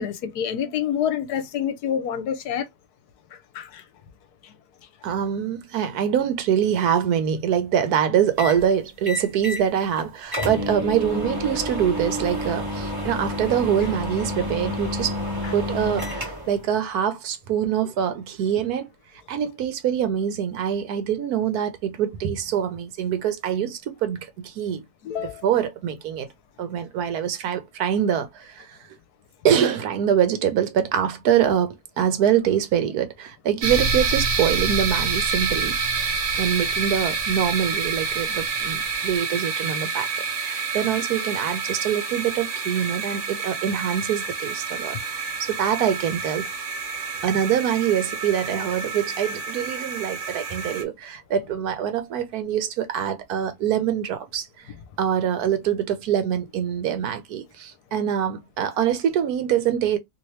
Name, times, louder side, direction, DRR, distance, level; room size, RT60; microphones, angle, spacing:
voice 1, 0.0-2.7 3.3-3.8 4.4-4.5 25.0-25.4, left 9 dB, 75° left, 1.2 m, -27 dB
voice 2, 5.0-15.2 15.5-18.9 19.3-24.8 25.2-26.3 26.6-28.8 29.4-40.1 40.4-46.5 47.2-54.5 55.0-60.0, right 9 dB, 75° right, 1.2 m, -24 dB
sound 1, 8.4-8.6 9.1-9.7 10.0-10.1 10.3-16.6, left 1 dB, 15° right, 1.3 m, -29 dB
sound 2, 33.6-50.8, right 4 dB, 55° right, 1.1 m, -28 dB
3.0 x 2.9 x 3.1 m
omnidirectional pair, 1.7 m